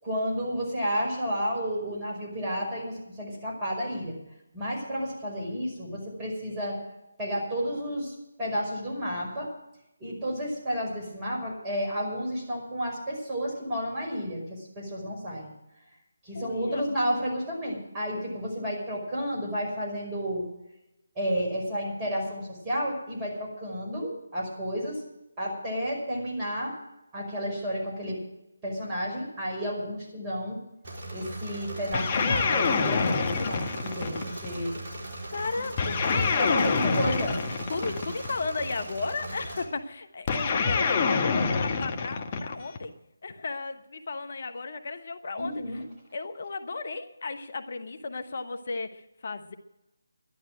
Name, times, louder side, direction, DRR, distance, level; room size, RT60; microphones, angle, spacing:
voice 1, 0.0-4.2 4.5-6.8 7.2-9.5 10.0-15.5 16.2-20.4 21.2-25.0 25.4-26.7 27.1-28.2 28.6-30.6 31.1-34.7 35.9-36.0 36.4-37.4 45.4-45.8, equal, 20° right, -4 dB, 5.6 m, -31 dB
voice 2, 16.3-17.0 35.3-37.2 37.7-42.9 43.2-45.8 46.1-49.5, left 3 dB, 50° left, 9 dB, 1.2 m, -35 dB
Engine / Mechanisms, 30.8-39.6, right 2 dB, 40° right, 4.4 m, -39 dB
sound 1, 31.9-34.5 35.8-38.3 40.3-42.8, left 5 dB, 30° left, 1.4 m, -26 dB
12.0 x 11.5 x 7.7 m, 0.89 s
figure-of-eight pair, 155°, 0 cm